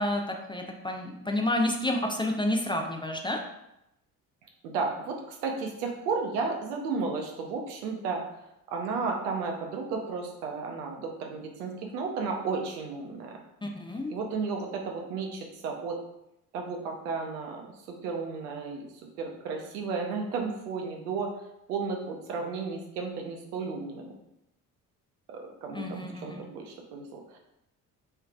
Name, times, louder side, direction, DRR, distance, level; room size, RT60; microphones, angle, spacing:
voice 1, 0.0-3.4 13.6-14.1 25.7-26.4, left 1 dB, 10° left, 2 dB, 0.5 m, -30 dB
voice 2, 4.6-8.2 8.7-13.3 14.1-16.0 16.5-17.6 17.9-18.9 19.2-21.3 21.7-24.1 25.3-27.4, right 4 dB, 75° right, 2 dB, 0.9 m, -33 dB
6.4 x 3.2 x 2.4 m, 0.85 s
figure-of-eight pair, 50°, 46 cm